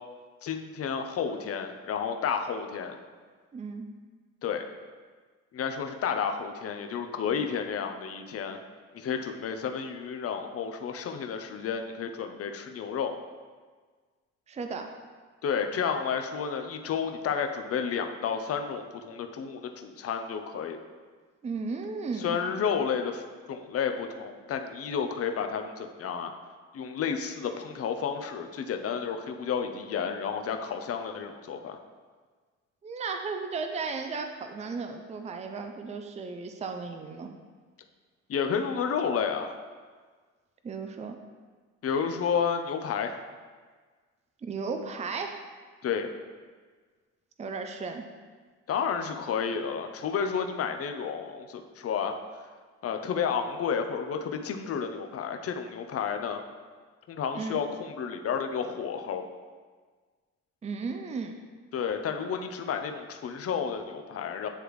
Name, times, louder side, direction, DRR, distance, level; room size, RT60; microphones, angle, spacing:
voice 1, 0.4-3.0 4.4-4.6 5.5-8.6 8.9-13.1 15.4-20.8 22.2-23.2 23.5-26.3 26.7-31.8 38.3-39.6 41.8-43.2 45.8-46.1 48.7-52.1 52.8-56.4 57.1-59.3 61.7-64.5, left 6 dB, 50° left, 6 dB, 0.6 m, -31 dB
voice 2, 3.5-3.9 14.5-14.9 21.4-22.4 32.8-37.3 40.6-41.2 44.4-45.4 47.4-48.1 57.3-57.6 60.6-61.3, right 4 dB, 25° right, 5 dB, 0.5 m, -35 dB
9.9 x 3.3 x 3.1 m, 1.5 s
cardioid pair, 90°, 30 cm